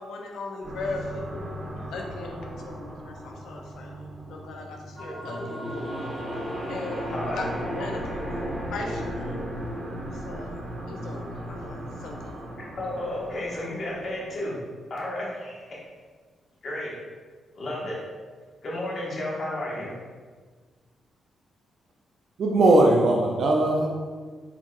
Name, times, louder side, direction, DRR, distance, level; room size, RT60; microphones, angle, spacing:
voice 1, 0.0-5.8 6.7-9.4 10.1-10.6 10.9-12.5, left 3 dB, 85° left, 1 dB, 0.7 m, -38 dB
sound 1, 0.6-14.4, equal, 35° right, 1.5 m, -35 dB
voice 2, 12.8-14.5 14.9-15.7 16.6-16.9 17.5-18.0 18.6-19.9, left 1 dB, 50° left, -6 dB, 1.5 m, -32 dB
voice 3, 22.4-23.9, right 2 dB, 60° right, 0 dB, 0.5 m, -19 dB
4.3 x 4.0 x 2.5 m, 1.5 s
cardioid pair, 95°, 0 cm